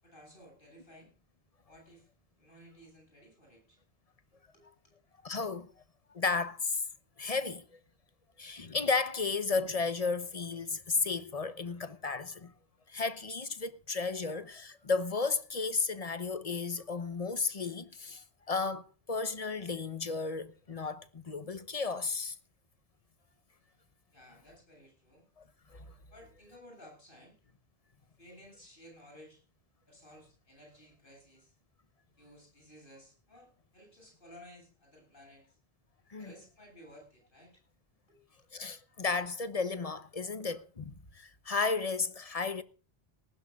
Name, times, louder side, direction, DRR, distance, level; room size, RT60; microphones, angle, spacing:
voice 1, 0.0-1.1 1.6-2.1 2.4-3.8 4.3-4.9 24.1-25.3 26.1-27.4 28.2-29.4 29.9-31.5 32.2-35.6 36.2-37.6 38.1-38.2, equal, 55° left, 8.4 m, -56 dB
voice 2, 5.2-5.7 6.1-6.8 7.2-7.8 8.4-12.5 12.9-22.4 25.4-25.5 25.7-25.9 36.1-36.3 38.5-42.6, left 4 dB, 35° left, 1.0 m, -33 dB
19.0 x 15.5 x 2.4 m
omnidirectional pair, 1.1 m